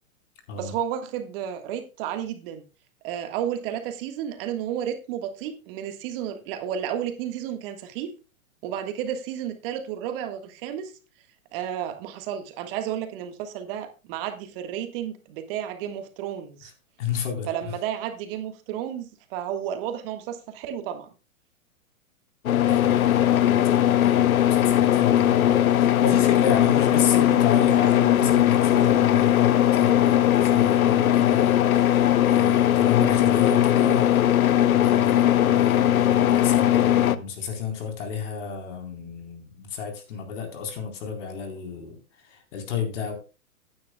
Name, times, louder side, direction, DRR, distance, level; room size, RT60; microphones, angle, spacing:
voice 1, 0.6-2.6 3.0-8.1 8.6-10.9 11.5-16.7 17.5-21.1, right 10 dB, 40° right, 7 dB, 1.6 m, -32 dB
voice 2, 17.0-17.5 22.6-43.1, left 6 dB, 55° left, 4 dB, 4.1 m, -31 dB
sound 1, 22.5-37.2, left 12 dB, 75° left, 0.9 m, -19 dB
15.5 x 9.5 x 2.3 m, 0.32 s
hypercardioid pair, 125°, 42 cm